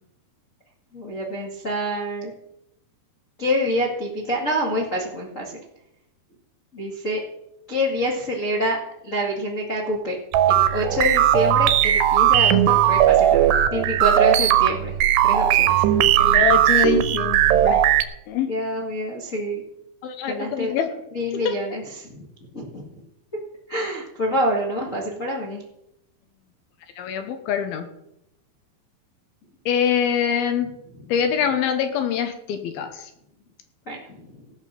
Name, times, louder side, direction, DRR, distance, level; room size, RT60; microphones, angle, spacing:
voice 1, 0.9-2.3 3.4-5.6 6.7-7.2 7.7-10.2 10.5-15.0 15.2-16.4 18.4-19.6 20.3-20.7 21.1-22.3 22.5-23.0 23.7-25.6 33.8-34.4, equal, 40° left, -5 dB, 1.1 m, -27 dB
sound 1, 10.3-18.0, right 11 dB, 85° right, 2.8 m, -18 dB
voice 2, 16.1-17.8 18.3-18.5 20.0-20.9 21.3-21.6 27.0-27.9 29.7-30.7 31.1-33.1, left 8 dB, 75° left, 7 dB, 2.6 m, -24 dB
17.0 x 5.8 x 6.8 m, 0.83 s
omnidirectional pair, 5.0 m